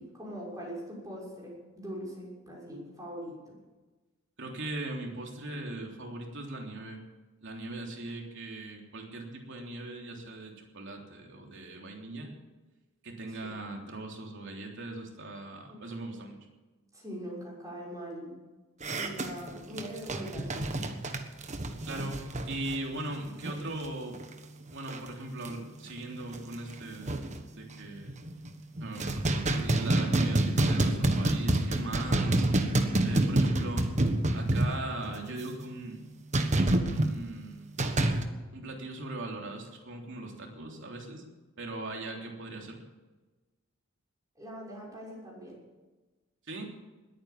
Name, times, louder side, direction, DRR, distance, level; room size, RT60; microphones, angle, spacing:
voice 1, 0.0-3.6 13.3-13.5 15.7-15.8 16.9-18.3 19.0-20.6 44.3-45.6, equal, 15° right, -4 dB, 6.3 m, -42 dB
voice 2, 4.4-7.0 7.4-12.3 13.0-16.4 21.9-24.2 24.7-27.3 27.6-28.1 28.8-29.2 29.5-32.5 33.0-33.9 34.3-36.0 36.8-37.7 38.5-41.2 41.6-42.8 46.5-46.8, right 2 dB, 60° right, 1 dB, 3.4 m, -39 dB
sound 1, 18.8-23.9 24.1-24.3 24.7-25.1 25.4-25.5 26.0-26.1 26.3-27.4 28.0-28.5 28.8-35.2 36.3-37.1 37.8-38.2, right 1 dB, 35° right, 1.4 m, -28 dB
20.5 x 9.4 x 7.2 m, 1.2 s
head